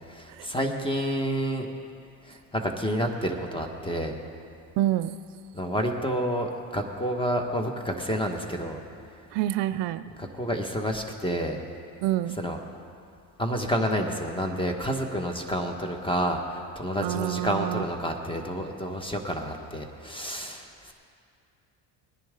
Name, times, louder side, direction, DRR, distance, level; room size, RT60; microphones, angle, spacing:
voice 1, 0.1-1.7 2.3-4.1 5.5-8.8 10.2-11.6 12.3-12.6 13.4-20.9, equal, 10° left, 3 dB, 1.5 m, -29 dB
voice 2, 4.8-5.1 9.3-10.0 12.0-12.4 17.0-17.8, right 14 dB, 70° right, 12 dB, 0.5 m, -27 dB
20.0 x 10.5 x 3.8 m, 2.5 s
supercardioid pair, 90°, 45 cm